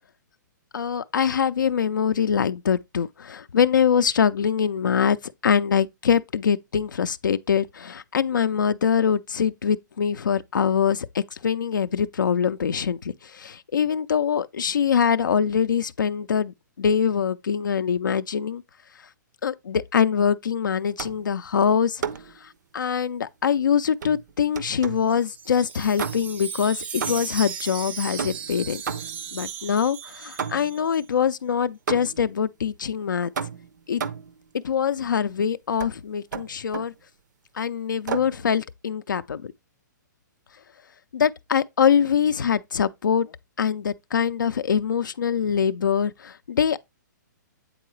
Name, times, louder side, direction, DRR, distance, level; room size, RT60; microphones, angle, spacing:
voice 1, 0.7-18.6 19.4-22.0 22.4-28.8 29.3-33.3 33.9-34.0 34.6-36.9 37.5-39.5 41.1-43.3 43.6-46.8, left 7 dB, 85° left, 0.4 m, -23 dB
sound 1, 21.0-21.3 22.0-22.4 24.0-25.1 26.0-26.5 27.0-27.5 28.2-29.3 30.4-30.9 31.9-32.3 33.4-34.4 35.8-36.0 36.3-37.0 38.1-38.4, right 7 dB, 70° right, 0.6 m, -32 dB
Wind chime, 24.8-31.0, right 7 dB, 15° right, 0.3 m, -36 dB
8.4 x 3.8 x 3.1 m
hypercardioid pair, 130°, 10 cm